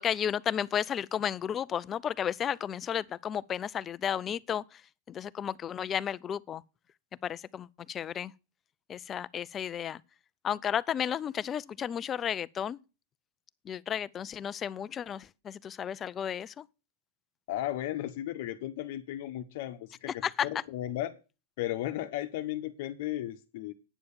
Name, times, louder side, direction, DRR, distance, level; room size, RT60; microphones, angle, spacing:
voice 1, 0.0-4.8 5.1-6.6 7.2-8.3 8.9-10.0 10.4-12.8 13.6-16.7 20.2-20.5, left 9 dB, 25° left, 0.4 m, -33 dB
voice 2, 17.5-21.1 21.6-23.7, left 14 dB, 55° left, 0.9 m, -35 dB
9.1 x 6.8 x 7.1 m
hypercardioid pair, 140°, 0 cm